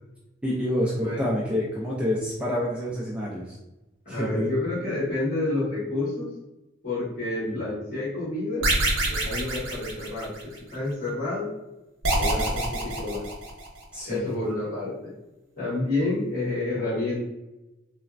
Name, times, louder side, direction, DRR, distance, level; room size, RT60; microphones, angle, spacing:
voice 1, 0.4-3.6 4.1-4.5 7.5-7.6 12.4-12.5 13.9-14.3, left 1 dB, 5° right, -6 dB, 0.3 m, -28 dB
voice 2, 4.0-6.3 6.8-8.7 9.1-11.5 12.1-13.2 14.1-15.1 15.6-17.2, left 2 dB, 45° left, -10 dB, 1.5 m, -29 dB
sound 1, 8.6-10.6 12.0-13.8, right 2 dB, 90° right, 0.7 m, -26 dB
3.2 x 2.0 x 2.4 m, 0.99 s
head